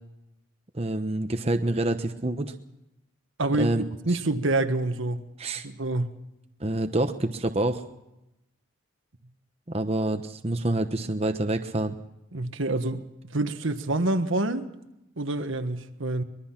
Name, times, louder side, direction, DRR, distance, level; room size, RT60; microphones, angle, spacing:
voice 1, 0.7-2.5 3.6-3.8 5.4-5.7 6.6-7.8 9.7-12.0, right 2 dB, 30° right, 1.0 m, -27 dB
voice 2, 3.4-3.7 4.0-5.2 5.6-6.1 12.3-13.0 13.3-14.7 15.2-16.2, right 2 dB, 75° right, 1.4 m, -27 dB
23.5 x 21.5 x 5.9 m
head